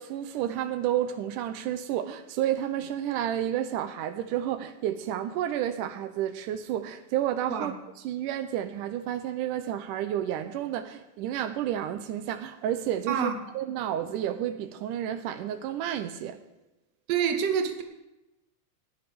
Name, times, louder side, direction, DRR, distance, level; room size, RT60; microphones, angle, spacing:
voice 1, 0.0-7.7 8.0-16.4, right 11 dB, 90° right, 2.3 m, -31 dB
voice 2, 13.1-13.4 17.1-17.8, right 7 dB, 60° right, 2.2 m, -27 dB
19.0 x 10.5 x 3.5 m
omnidirectional pair, 3.6 m